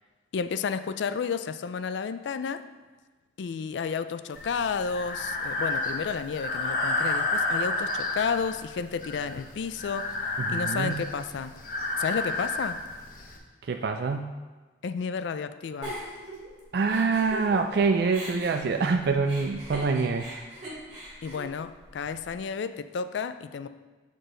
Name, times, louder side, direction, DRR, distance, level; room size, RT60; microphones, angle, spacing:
voice 1, 0.3-2.7 3.4-10.2 10.5-11.5 12.0-12.8 14.8-15.9 21.2-23.7, left 6 dB, 70° left, 12 dB, 0.3 m, -31 dB
Breathing, 4.4-13.4, left 2 dB, 45° left, 0.8 m, -31 dB
voice 2, 10.5-11.0 13.6-14.3 16.7-20.5, right 4 dB, 55° right, 6 dB, 0.3 m, -26 dB
Giggle, 15.8-17.8 18.1-22.3, right 1 dB, 40° right, 2.4 m, -41 dB
6.9 x 6.5 x 3.8 m, 1.3 s
head